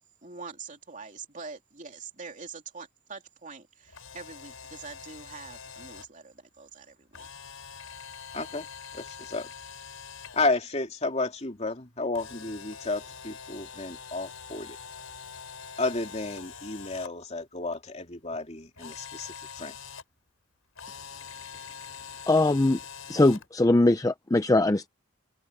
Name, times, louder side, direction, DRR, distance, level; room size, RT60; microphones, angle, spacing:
voice 1, 0.2-7.3, right 4 dB, 40° right, 3.1 m, -44 dB
Camera, 3.9-6.1 7.1-10.4 12.1-17.1 18.8-20.0 20.7-23.5, left 6 dB, 85° left, 5.7 m, -44 dB
voice 2, 8.3-8.7 8.9-9.5 10.3-14.8 15.8-19.8, left 3 dB, 30° left, 2.8 m, -32 dB
voice 3, 22.3-22.8 23.1-24.9, left 2 dB, 15° left, 0.5 m, -21 dB
head